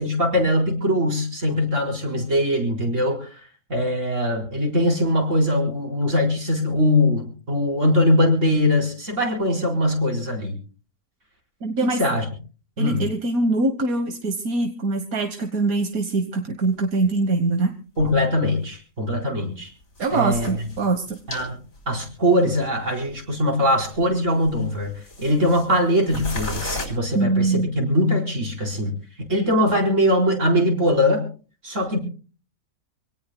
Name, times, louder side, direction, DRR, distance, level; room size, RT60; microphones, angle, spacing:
voice 1, 0.0-3.3 3.7-10.6 11.8-12.3 12.8-13.0 18.0-19.7 20.1-20.5 21.3-21.6 21.9-24.9 25.2-28.9 29.2-31.2 31.6-32.0, left 1 dB, 60° right, 0 dB, 4.8 m, -21 dB
voice 2, 11.6-12.0 12.8-17.7 20.0-21.2 27.1-27.7, right 3 dB, 85° right, 6 dB, 1.8 m, -23 dB
sound 1, 16.9-17.0 18.0-18.1 18.5-18.6 20.0-21.5 21.8-21.9 22.5-22.7 23.1-23.2 23.8-24.2 24.4-25.8 26.1-26.9, left 2 dB, 80° left, 4.0 m, -34 dB
26.5 x 18.0 x 2.2 m, 0.37 s
omnidirectional pair, 1.5 m